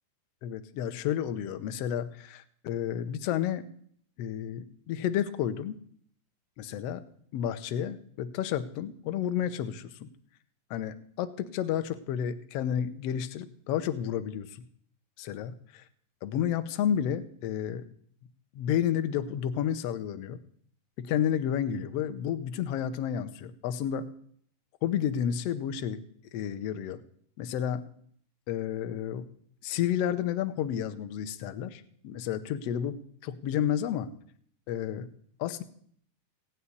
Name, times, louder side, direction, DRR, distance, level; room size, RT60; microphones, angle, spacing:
voice 1, 0.4-3.7 4.2-5.8 6.6-7.0 7.3-10.1 10.7-14.6 15.2-15.8 16.2-17.9 18.5-20.4 21.0-24.0 24.8-26.0 26.3-27.0 27.4-27.8 28.5-29.3 29.6-34.1 34.7-35.1 35.4-35.6, left 9 dB, 75° left, 10 dB, 1.4 m, -31 dB
17.0 x 5.7 x 9.7 m, 0.62 s
omnidirectional pair, 4.0 m